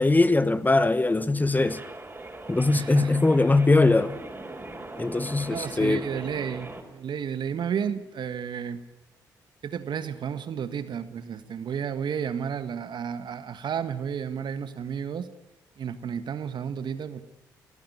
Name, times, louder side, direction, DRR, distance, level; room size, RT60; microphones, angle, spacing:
voice 1, 0.0-1.8 2.5-4.2 5.0-6.0, left 2 dB, 20° left, 1.2 m, -21 dB
sound 1, 1.7-6.8, right 2 dB, 20° right, 4.8 m, -40 dB
voice 2, 2.7-3.3 5.5-8.8 9.6-15.3 15.8-17.2, right 7 dB, 60° right, 1.6 m, -32 dB
21.0 x 14.5 x 9.8 m
hypercardioid pair, 45°, 9 cm